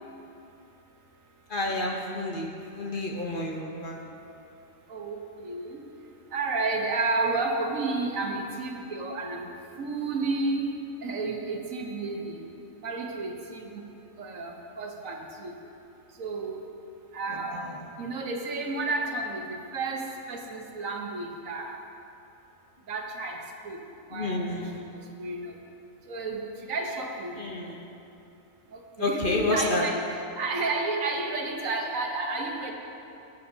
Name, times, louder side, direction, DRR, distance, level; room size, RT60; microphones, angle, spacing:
voice 1, 1.5-4.0 17.3-17.7 24.1-24.7 27.4-27.9 29.0-29.8, left 2 dB, 45° left, 0 dB, 1.0 m, -30 dB
voice 2, 4.9-5.8 6.3-9.5 9.8-10.7 11.0-12.4 12.8-13.8 14.2-15.5 16.2-16.6 17.1-17.6 18.0-21.8 22.9-23.4 23.6-23.8 24.1-24.9 25.2-25.6 26.1-26.4 26.7-27.4 28.7-30.0 30.4-32.7, right 3 dB, 80° right, 2 dB, 1.4 m, -31 dB
17.0 x 8.1 x 2.7 m, 2.8 s
omnidirectional pair, 1.4 m